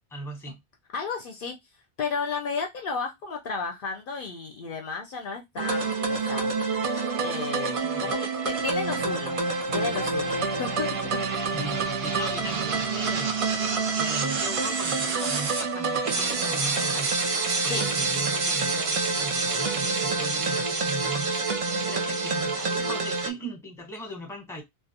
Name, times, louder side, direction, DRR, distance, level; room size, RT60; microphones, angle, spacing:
voice 1, 0.1-0.6 7.8-8.1 11.5-17.2 17.6-21.3 21.9-24.6, right 1 dB, 5° left, 0.8 m, -38 dB
voice 2, 0.9-1.6 2.0-6.5 7.2-9.4 9.7-11.3 11.6-11.8 17.7-17.9, left 5 dB, 65° left, 0.7 m, -33 dB
sound 1, 5.6-23.3, right 4 dB, 50° right, 0.4 m, -27 dB
sound 2, 8.5-14.6, right 2 dB, 90° right, 0.8 m, -42 dB
2.3 x 2.0 x 2.7 m
omnidirectional pair, 1.0 m